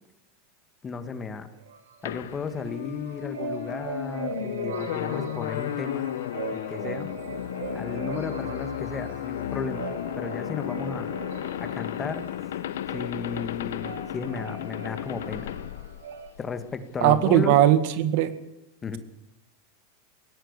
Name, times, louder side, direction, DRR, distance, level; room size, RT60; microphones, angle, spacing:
voice 1, 0.8-1.5 2.0-6.1 6.5-7.1 7.7-11.1 11.6-12.2 12.9-15.5 16.4-17.6 18.8-19.0, left 5 dB, 20° left, 10 dB, 2.0 m, -34 dB
sound 1, 1.6-2.7 3.0-16.3, right 6 dB, 85° right, 3.4 m, -40 dB
sound 2, 2.1-16.6, left 11 dB, 80° left, 1.0 m, -34 dB
voice 2, 17.0-18.3, right 12 dB, 60° right, 12 dB, 1.9 m, -19 dB
21.5 x 17.5 x 6.8 m, 0.92 s
supercardioid pair, 125°, 0 cm